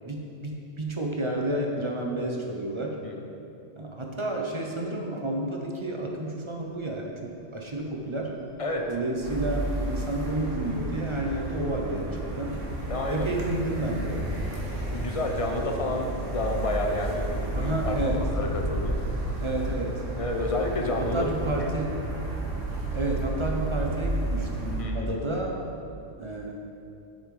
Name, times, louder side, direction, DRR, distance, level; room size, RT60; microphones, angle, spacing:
voice 1, 0.0-3.0 3.8-8.3 8.9-12.6 13.1-14.3 17.5-18.2 19.4-20.0 21.0-22.0 22.9-25.6 26.2-26.5, right 1 dB, 30° right, 0 dB, 0.6 m, -30 dB
Wind, 6.8-6.9 7.2-7.3 7.6-11.2 11.5-23.6 23.9-24.0, equal, 60° left, 1.5 m, -40 dB
sound 1, 9.2-24.8, right 1 dB, 90° right, 1.5 m, -32 dB
voice 2, 12.9-13.3 14.9-19.0 20.2-21.3 24.8-25.1, left 1 dB, 35° left, 2 dB, 0.6 m, -30 dB
7.5 x 5.3 x 4.8 m, 2.7 s
omnidirectional pair, 1.2 m